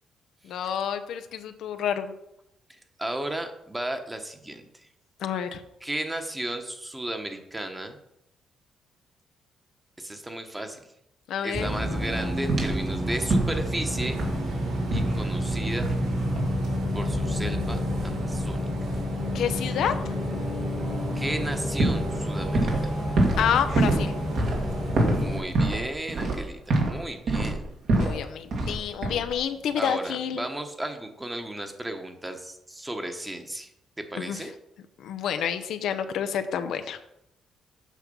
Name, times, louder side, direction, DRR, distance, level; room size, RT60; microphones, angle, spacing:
voice 1, 0.5-2.1 5.2-5.6 11.3-11.7 19.3-19.9 23.4-24.2 28.0-30.4 34.2-34.4 35.0-37.0, left 8 dB, 80° left, 8 dB, 0.7 m, -28 dB
voice 2, 2.7-4.7 5.8-8.0 10.0-10.8 11.4-14.2 14.9-15.9 16.9-18.7 21.1-22.9 25.2-27.7 29.8-33.7 34.0-34.5, right 1 dB, 15° right, 6 dB, 1.2 m, -34 dB
Bus, 11.5-25.4, equal, 80° right, 2.9 m, -29 dB
sound 1, 12.5-12.8 13.3-13.7 14.0-14.5 14.9-15.2 15.8-16.1 16.4-16.6 21.3-21.4 21.8-22.9 23.2-27.0 27.3-28.2 28.5-28.8 29.0-29.4, right 2 dB, 65° right, 2.2 m, -25 dB
8.3 x 5.9 x 5.5 m, 0.81 s
cardioid pair, 90°, 0 cm